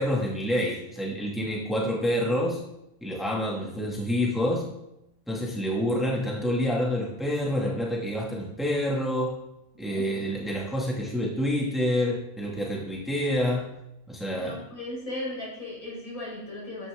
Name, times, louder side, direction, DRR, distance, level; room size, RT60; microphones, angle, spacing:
voice 1, 0.0-2.6 3.0-4.7 5.3-9.4 9.8-13.7 14.1-14.6, equal, ahead, -3 dB, 2.4 m, -27 dB
voice 2, 14.3-16.9, left 1 dB, 70° left, -5 dB, 5.9 m, -37 dB
15.0 x 10.5 x 3.8 m, 0.86 s
omnidirectional pair, 1.6 m